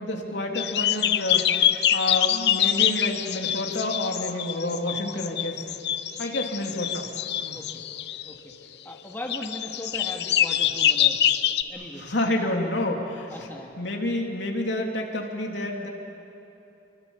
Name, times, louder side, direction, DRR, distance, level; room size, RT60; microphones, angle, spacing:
voice 1, 0.0-1.6 1.9-5.6 6.2-7.1 7.4-7.7 12.0-13.5 13.8-15.9, left 1 dB, 85° left, 1 dB, 3.0 m, -29 dB
sound 1, 0.5-8.3 9.3-11.6, left 10 dB, 65° left, 0.8 m, -25 dB
voice 2, 8.8-11.2 11.7-12.0 13.3-13.7, left 1 dB, 10° left, 0 dB, 2.1 m, -38 dB
28.0 x 24.0 x 7.2 m, 2.9 s
head